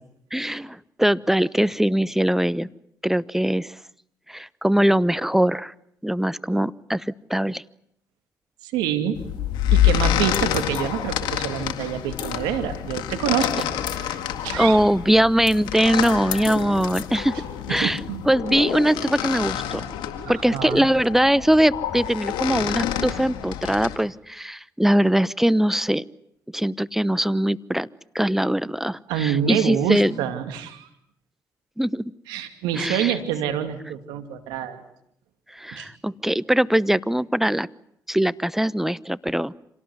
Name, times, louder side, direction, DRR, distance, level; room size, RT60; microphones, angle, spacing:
voice 1, 0.3-2.7 3.0-3.7 4.3-5.7 6.0-7.6 14.6-17.3 17.7-18.0 18.3-19.8 20.3-26.0 26.5-27.9 28.1-30.1 31.8-32.1 32.8-33.1 35.6-37.7 38.1-39.5, right 1 dB, 5° right, 19 dB, 0.9 m, -21 dB
voice 2, 8.6-9.2 9.7-13.6 13.9-14.8 17.7-18.3 20.2-20.9 29.1-30.9 32.3-34.8 35.7-35.9, right 9 dB, 90° right, 8 dB, 2.5 m, -27 dB
sound 1, 9.1-24.0, left 11 dB, 85° left, 2.0 m, -27 dB
27.0 x 18.0 x 9.7 m, 0.73 s
supercardioid pair, 50°, 7 cm